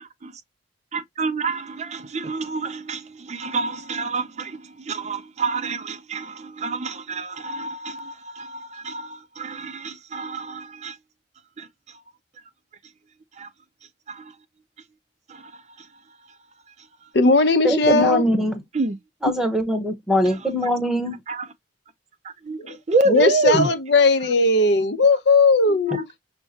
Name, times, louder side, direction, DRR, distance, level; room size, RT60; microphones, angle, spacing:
voice 1, 0.9-11.0 11.6-12.0 13.4-13.5 14.1-14.3 15.3-15.9 17.0-17.1 18.7-19.0 20.3-20.4 21.3-21.5 22.2-23.7 25.7-26.0, right 3 dB, 35° right, 0.4 m, -28 dB
voice 2, 17.1-18.3 19.3-19.4 22.6-22.8 23.1-26.1, left 3 dB, 60° left, 0.7 m, -18 dB
voice 3, 17.6-18.6 19.2-21.2 23.5-23.7, equal, 5° right, 0.9 m, -22 dB
6.2 x 2.1 x 2.7 m
head